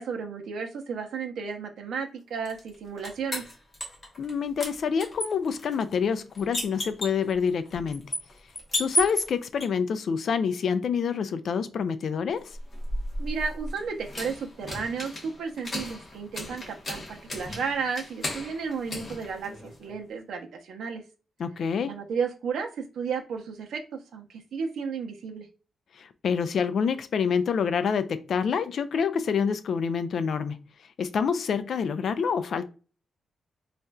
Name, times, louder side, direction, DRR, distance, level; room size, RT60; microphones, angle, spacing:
voice 1, 0.0-3.5 13.2-21.0 21.9-25.5, right 5 dB, 90° right, 0.6 m, -33 dB
sound 1, 2.5-4.3 4.6-9.7 12.4-19.9, left 1 dB, 25° left, 1.0 m, -35 dB
voice 2, 4.2-8.1 8.8-12.6 21.4-22.0 26.0-30.6 31.0-32.7, left 6 dB, 60° left, 0.3 m, -27 dB
4.1 x 2.4 x 2.2 m
wide cardioid pair, 155°, 0 cm